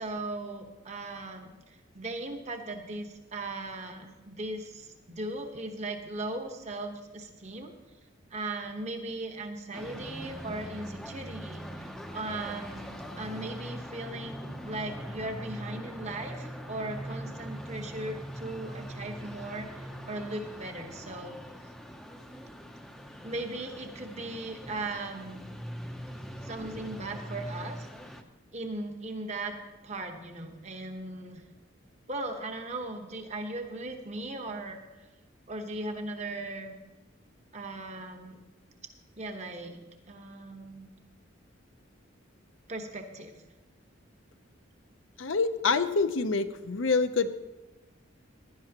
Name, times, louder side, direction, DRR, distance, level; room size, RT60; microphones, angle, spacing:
voice 1, 0.0-7.7 8.3-21.4 23.2-25.4 26.4-27.9 28.5-29.6 29.8-31.4 32.1-35.1 35.5-36.7 37.5-38.4 39.2-39.8 40.1-40.9 42.7-43.3, right 2 dB, 35° right, 4 dB, 1.1 m, -38 dB
sound 1, 9.7-28.2, equal, ahead, 0.6 m, -42 dB
voice 2, 45.2-47.3, left 4 dB, 70° left, 10 dB, 0.7 m, -26 dB
15.5 x 11.5 x 2.9 m, 1.1 s
head